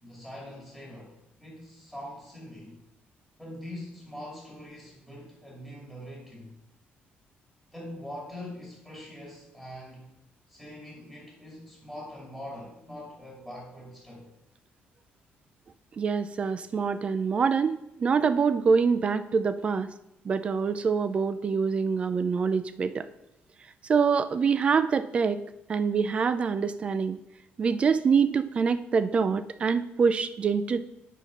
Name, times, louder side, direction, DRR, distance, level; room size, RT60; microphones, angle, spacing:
voice 1, 0.0-2.8 3.4-6.5 7.7-10.1 10.5-14.3, left 1 dB, 5° right, -3 dB, 2.5 m, -43 dB
voice 2, 16.0-19.9 20.2-23.0 23.9-25.4 25.7-27.2 27.6-30.8, right 5 dB, 30° right, 13 dB, 0.4 m, -25 dB
7.4 x 5.8 x 5.3 m, 0.84 s
cardioid pair, 170°, 4 cm